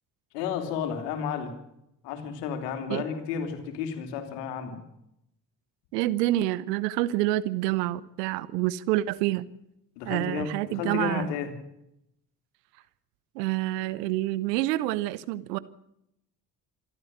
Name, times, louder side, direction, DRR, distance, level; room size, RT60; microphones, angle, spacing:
voice 1, 0.3-1.5 2.0-4.8 10.0-11.5, left 7 dB, 75° left, 7 dB, 3.2 m, -32 dB
voice 2, 5.9-9.5 10.0-11.3 13.3-15.6, right 16 dB, 75° right, 18 dB, 1.1 m, -27 dB
27.0 x 12.5 x 8.8 m, 0.82 s
hypercardioid pair, 50°, 48 cm